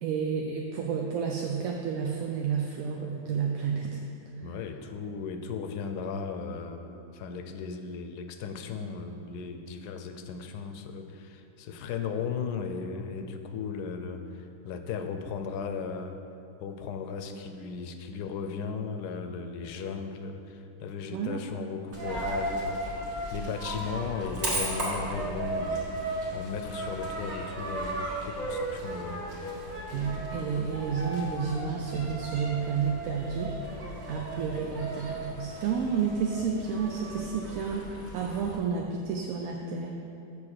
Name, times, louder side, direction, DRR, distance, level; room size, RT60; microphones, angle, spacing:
voice 1, 0.0-4.0 21.1-21.4 29.9-33.5 34.1-37.9 38.1-40.0, right 6 dB, 70° right, 1 dB, 0.9 m, -30 dB
voice 2, 4.4-16.2 16.6-22.8 23.3-25.8 26.3-29.2, left 5 dB, 85° left, 7 dB, 1.2 m, -36 dB
Coin (dropping), 21.9-38.6, right 1 dB, 45° right, 1.8 m, -35 dB
7.1 x 4.7 x 6.4 m, 2.7 s
omnidirectional pair, 1.7 m